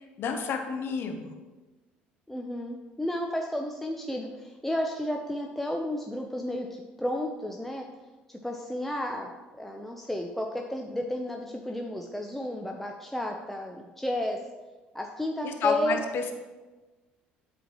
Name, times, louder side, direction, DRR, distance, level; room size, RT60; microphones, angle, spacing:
voice 1, 0.2-1.4 15.4-16.3, left 5 dB, 60° left, 5 dB, 0.8 m, -30 dB
voice 2, 2.3-7.9 8.3-14.4 14.9-16.0, left 1 dB, 5° left, 2 dB, 0.6 m, -32 dB
8.0 x 4.3 x 2.9 m, 1.2 s
hypercardioid pair, 70°, 4 cm